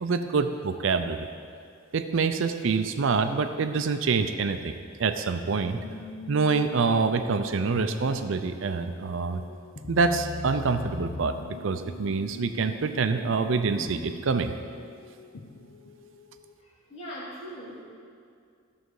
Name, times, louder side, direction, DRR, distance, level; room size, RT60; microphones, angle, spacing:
voice 1, 0.0-1.3 1.9-4.7 5.0-5.8 6.3-9.4 9.9-11.4 11.6-14.5, right 4 dB, 65° right, 9 dB, 0.5 m, -26 dB
sound 1, 5.7-16.5, left 3 dB, 55° left, 0.6 m, -42 dB
voice 2, 16.6-17.8, equal, 30° left, -7 dB, 2.7 m, -40 dB
13.5 x 6.6 x 4.7 m, 2.3 s
head